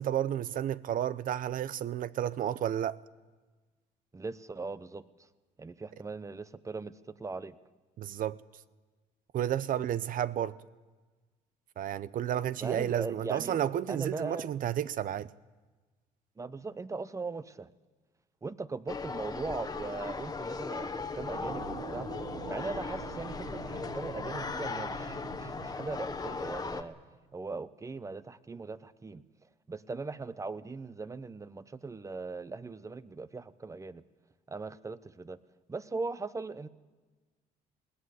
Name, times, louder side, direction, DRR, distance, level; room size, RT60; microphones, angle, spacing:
voice 1, 0.0-3.0 8.0-8.4 9.3-10.6 11.8-15.3, right 10 dB, 55° right, 0.7 m, -31 dB
voice 2, 4.1-5.0 5.6-6.9 7.2-7.6 12.6-13.6 13.9-14.5 16.4-17.7 18.4-22.1 22.5-27.0 27.3-29.2 29.7-34.0 34.5-35.4 35.7-36.7, right 3 dB, 20° right, 0.8 m, -39 dB
sound 1, 18.9-26.8, left 4 dB, 20° left, 1.3 m, -38 dB
sound 2, 21.3-27.2, right 11 dB, 70° right, 1.1 m, -46 dB
20.5 x 17.5 x 8.1 m
cardioid pair, 110°, 17 cm